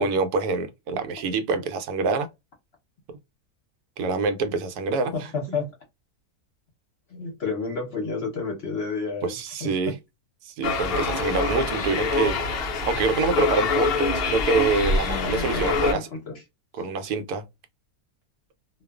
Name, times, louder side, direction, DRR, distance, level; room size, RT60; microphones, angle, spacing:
voice 1, 0.0-2.3 4.0-5.1 9.2-9.9 10.4-12.4 12.8-16.1 16.8-17.4, right 4 dB, 80° right, 1.1 m, -26 dB
voice 2, 5.1-5.7 7.1-9.9 15.0-16.4 16.8-16.9, left 4 dB, 55° left, 0.8 m, -31 dB
sound 1, 10.6-15.9, left 4 dB, 90° left, 0.5 m, -25 dB
2.4 x 2.3 x 2.2 m
omnidirectional pair, 1.6 m